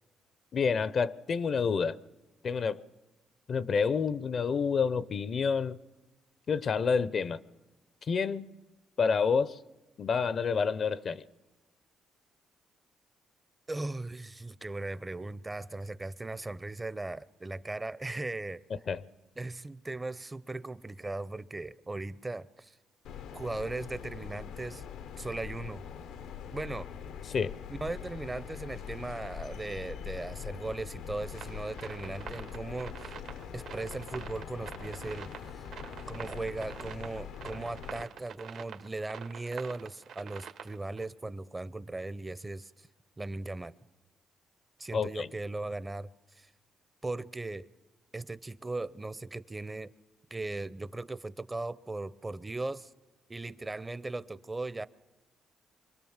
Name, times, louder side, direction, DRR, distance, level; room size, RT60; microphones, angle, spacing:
voice 1, 0.5-2.0 2.4-2.8 3.5-5.8 6.5-7.4 8.1-8.5 9.0-9.6 10.0-11.2 18.9-19.0 27.3-27.6 44.9-45.3, left 5 dB, 50° left, 0.7 m, -28 dB
voice 2, 13.7-18.6 19.4-22.7 23.3-24.8 25.2-25.8 26.5-26.9 27.7-33.2 33.5-35.7 36.1-42.9 43.2-43.7 44.8-46.5 47.0-47.7 48.1-49.9 50.3-52.9 53.3-54.9, right 2 dB, 20° right, 0.7 m, -38 dB
sound 1, 23.0-38.0, left 8 dB, 85° left, 1.0 m, -43 dB
sound 2, 31.3-41.1, right 7 dB, 75° right, 1.6 m, -45 dB
24.5 x 22.0 x 7.3 m
cardioid pair, 90°, 0 cm